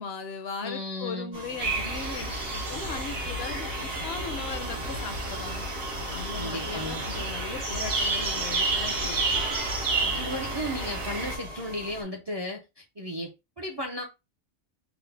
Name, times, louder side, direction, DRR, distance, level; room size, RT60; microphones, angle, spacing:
voice 1, 0.0-5.7 6.1-9.3, left 5 dB, 65° left, 0.8 m, -38 dB
voice 2, 0.6-1.4 6.4-7.0 10.1-14.0, equal, 35° right, 0.4 m, -35 dB
Industrial texture, 1.3-12.0, right 2 dB, 80° right, 1.4 m, -41 dB
sound 1, 1.6-11.4, right 2 dB, 65° right, 1.2 m, -30 dB
3.7 x 2.0 x 3.3 m
omnidirectional pair, 1.2 m